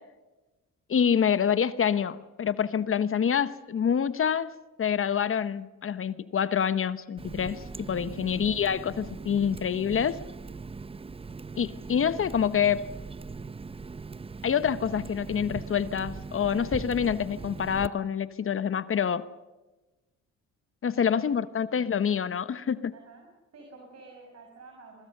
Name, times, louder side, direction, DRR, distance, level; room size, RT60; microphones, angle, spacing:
voice 1, 0.9-4.5 4.8-10.2 11.6-12.9 14.4-19.3 20.8-22.9, left 8 dB, 45° left, 14 dB, 1.0 m, -27 dB
Water tap faucet, 7.2-17.9, right 4 dB, 20° right, 0.7 m, -40 dB
voice 2, 21.0-21.3 22.9-23.3 23.5-25.1, right 3 dB, 55° right, 2 dB, 5.9 m, -49 dB
24.0 x 20.5 x 6.6 m, 1.1 s
cardioid pair, 90°, 30 cm